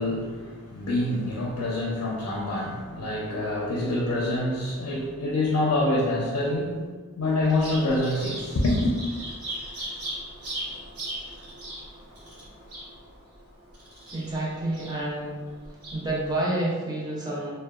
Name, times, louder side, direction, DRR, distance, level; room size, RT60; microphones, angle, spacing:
voice 1, 0.0-6.8 7.1-8.9, left 1 dB, 80° left, -3 dB, 0.5 m, -26 dB
Bird vocalization bird call bird song, 7.4-16.4, right 1 dB, 75° right, 0.8 m, -39 dB
voice 2, 14.1-15.5 15.9-17.5, right 1 dB, 20° right, -5 dB, 0.5 m, -29 dB
2.7 x 2.1 x 2.3 m, 1.5 s
head